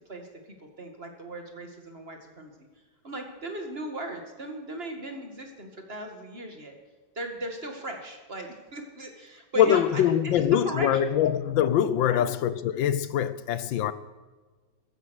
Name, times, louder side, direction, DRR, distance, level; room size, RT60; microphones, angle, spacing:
voice 1, 0.8-2.5 3.0-6.7 7.2-11.1 12.1-12.2, right 2 dB, 30° right, 2.3 m, -37 dB
voice 2, 9.6-13.9, left 10 dB, 85° left, 1.6 m, -23 dB
15.0 x 14.5 x 6.5 m
omnidirectional pair, 2.0 m